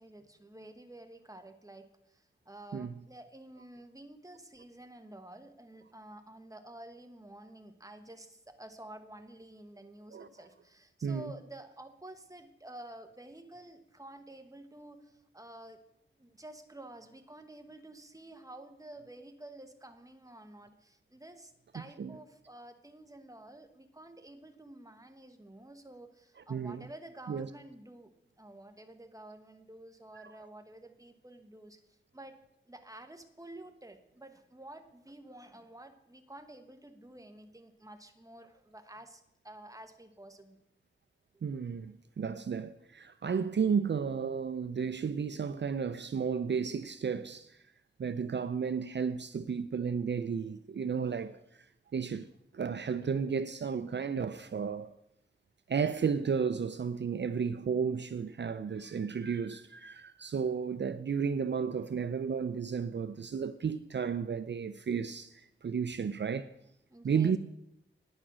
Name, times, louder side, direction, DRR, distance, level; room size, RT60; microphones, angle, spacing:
voice 1, 0.0-15.8 16.2-32.4 32.7-40.6 66.9-67.4, right 1 dB, 15° right, 1.2 m, -51 dB
voice 2, 26.5-26.8 27.3-27.5 30.2-30.3 41.4-47.6 48.0-51.7 51.9-54.9 55.7-66.5 67.0-67.4, right 6 dB, 60° right, 0.4 m, -33 dB
9.8 x 8.8 x 6.1 m
wide cardioid pair, 70°, 21 cm